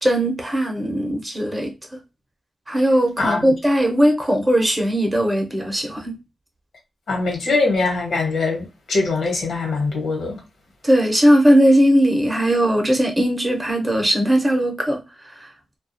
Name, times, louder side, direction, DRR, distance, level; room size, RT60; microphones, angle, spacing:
voice 1, 0.0-2.0 2.7-6.2 10.8-15.0 15.4-15.5, equal, 15° right, 0.7 m, -18 dB
voice 2, 3.2-3.5 7.1-10.4, left 3 dB, 80° left, 1.0 m, -22 dB
2.3 x 2.2 x 2.6 m
wide cardioid pair, 115°, 0 cm